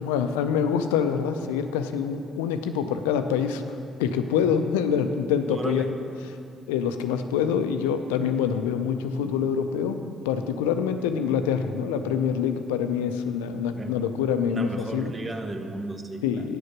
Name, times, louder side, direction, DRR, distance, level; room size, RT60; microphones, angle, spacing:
voice 1, 0.0-3.6 4.0-6.0 6.7-15.1 16.2-16.6, left 7 dB, 90° left, 8 dB, 0.4 m, -26 dB
voice 2, 5.5-5.9 13.8-14.0 14.5-16.5, right 2 dB, 35° right, 5 dB, 1.0 m, -34 dB
8.7 x 6.6 x 5.9 m, 2.5 s
hypercardioid pair, 50°, 0 cm